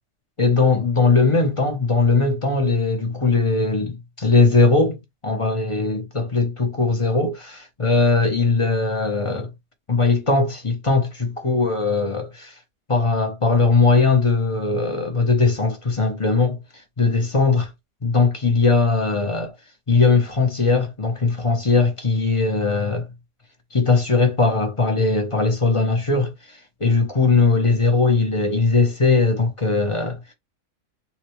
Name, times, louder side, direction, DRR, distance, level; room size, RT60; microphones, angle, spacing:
voice 1, 0.4-9.5 9.9-11.1 11.4-12.5 12.9-16.6 17.0-17.7 18.0-19.5 19.9-23.1 23.7-26.3 26.8-30.2, left 3 dB, 35° left, 0.5 m, -19 dB
3.7 x 2.2 x 2.9 m
omnidirectional pair, 1.5 m